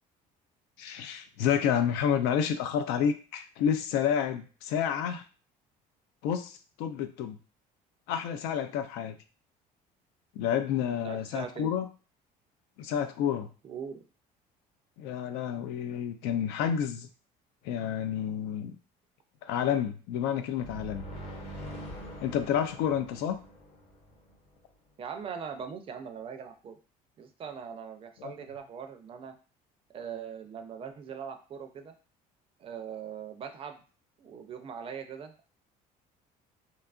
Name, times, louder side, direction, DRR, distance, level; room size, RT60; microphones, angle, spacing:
voice 1, 0.8-5.2 6.2-7.4 8.1-9.1 10.4-11.9 12.8-13.5 15.0-17.1 17.6-18.8 19.4-21.0 22.2-23.4 28.2-28.3, left 8 dB, 90° left, 8 dB, 0.4 m, -29 dB
voice 2, 11.0-11.7 13.6-14.0 25.0-26.8 27.2-29.4 29.9-31.9 32.6-33.8 34.2-35.5, right 7 dB, 35° right, 6 dB, 0.4 m, -41 dB
sound 1, 20.6-24.4, equal, 40° left, 0.7 m, -44 dB
2.7 x 2.3 x 2.4 m, 0.35 s
cardioid pair, 130°, 16 cm